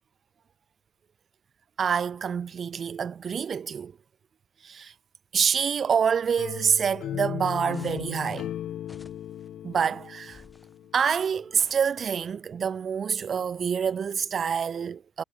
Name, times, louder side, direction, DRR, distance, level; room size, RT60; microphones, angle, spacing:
voice 1, 1.8-3.9 4.6-4.9 5.3-8.5 9.6-10.4 10.9-15.2, right 7 dB, 45° right, 0.6 m, -27 dB
sound 1, 6.4-11.3, left 11 dB, 75° left, 0.4 m, -37 dB
sound 2, 7.7-8.2 8.8-9.5 10.2-10.8 11.5-12.3, left 3 dB, 15° left, 7.8 m, -54 dB
cardioid pair, 120°, 0 cm